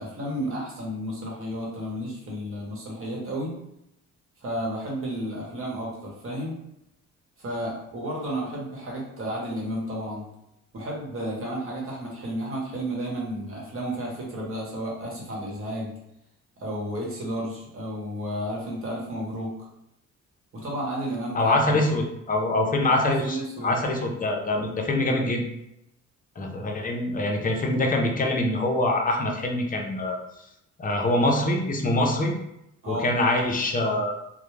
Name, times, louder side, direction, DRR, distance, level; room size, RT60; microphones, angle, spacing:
voice 1, 0.0-3.5 4.4-6.5 7.4-10.3 10.7-15.9 16.6-19.5 20.5-22.0 22.9-23.8 32.8-33.1, equal, 45° right, -3 dB, 1.1 m, -32 dB
voice 2, 21.3-25.4 26.4-30.2 30.8-32.3 32.9-34.1, left 1 dB, 30° left, 1 dB, 0.5 m, -24 dB
2.3 x 2.1 x 3.1 m, 0.83 s
cardioid pair, 90°, 30 cm